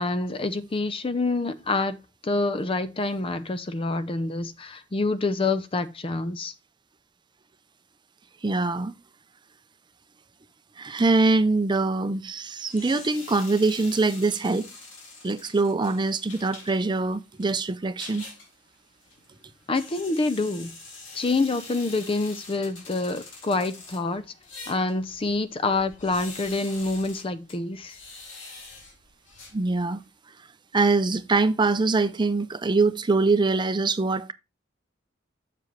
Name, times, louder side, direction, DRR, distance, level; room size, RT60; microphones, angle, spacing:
voice 1, 0.0-2.0 2.2-6.5 19.7-20.7 21.1-24.3 24.7-28.0, left 3 dB, 30° left, 0.5 m, -27 dB
voice 2, 8.4-8.9 10.8-14.7 15.2-18.2 29.5-30.0 30.7-34.3, right 3 dB, 25° right, 0.5 m, -23 dB
sound 1, 12.6-30.1, left 3 dB, 80° left, 2.6 m, -45 dB
7.4 x 6.8 x 3.1 m
head